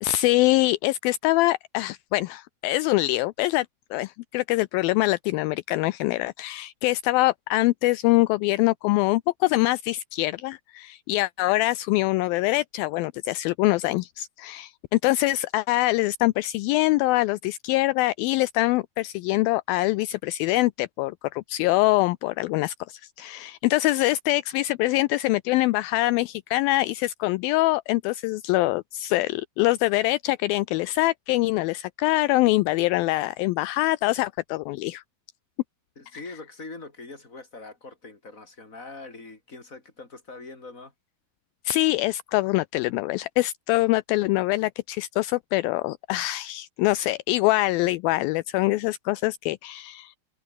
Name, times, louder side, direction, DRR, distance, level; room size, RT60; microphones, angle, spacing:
voice 1, 0.0-35.0 41.7-50.2, left 19 dB, 80° left, 2.3 m, -24 dB
voice 2, 36.0-40.9, left 3 dB, 20° left, 5.1 m, -42 dB
omnidirectional pair, 4.4 m